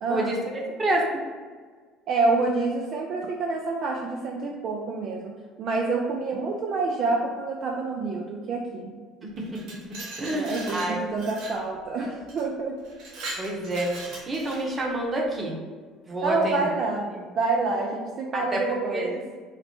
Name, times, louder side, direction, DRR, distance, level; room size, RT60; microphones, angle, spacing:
voice 1, 0.0-0.3 2.1-5.3 5.6-8.9 10.3-12.8 16.2-17.1 17.3-19.2, right 3 dB, 55° right, 0 dB, 0.4 m, -27 dB
voice 2, 9.2-9.6 10.2-11.0 13.4-15.5 16.1-16.7 17.1-17.2 18.3-18.6 18.9-19.1, right 1 dB, 25° right, -1 dB, 1.0 m, -28 dB
Glass, 9.4-11.6 12.3-12.4 12.8-14.9, right 2 dB, 75° right, 1.0 m, -39 dB
4.1 x 2.0 x 4.4 m, 1.5 s
supercardioid pair, 105°, 0 cm